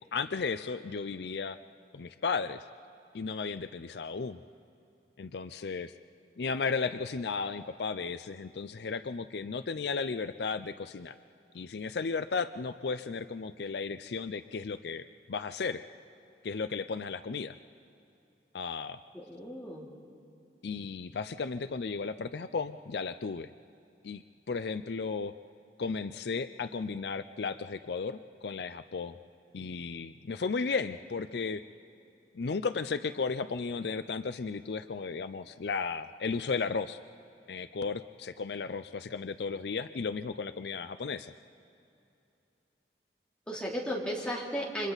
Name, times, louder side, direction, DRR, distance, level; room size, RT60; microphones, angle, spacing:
voice 1, 0.1-1.6 1.9-2.6 3.1-4.4 5.2-5.9 6.4-11.1 11.5-15.8 16.4-17.5 18.5-19.0 20.6-23.5 24.0-24.2 24.5-25.3 25.8-29.1 29.5-31.6 32.3-37.0 37.5-41.3, left 4 dB, 65° left, 12 dB, 0.5 m, -34 dB
voice 2, 19.1-19.9 43.5-44.9, equal, 5° left, -5 dB, 3.1 m, -35 dB
30.0 x 25.5 x 4.0 m, 2.8 s
head